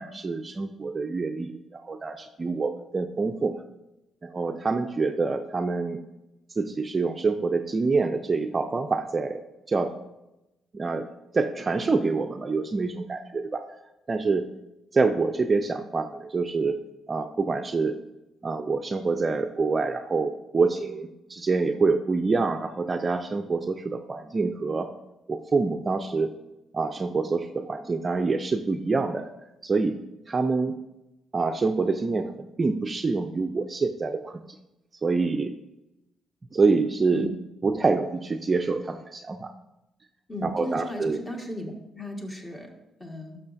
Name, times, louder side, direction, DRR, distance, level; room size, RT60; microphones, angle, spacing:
voice 1, 0.0-3.6 4.2-6.0 6.5-9.4 9.7-9.9 10.7-11.1 11.3-13.6 14.1-14.5 14.9-18.0 18.4-24.9 25.3-26.3 26.7-29.3 29.6-30.0 30.3-30.8 31.3-34.4 35.0-35.5 36.5-37.3 37.6-39.5 40.4-41.2, right 4 dB, 30° right, 6 dB, 0.5 m, -26 dB
voice 2, 40.3-43.4, left 1 dB, 20° left, 1 dB, 1.6 m, -36 dB
11.5 x 6.2 x 2.6 m, 0.95 s
cardioid pair, 90°, 0 cm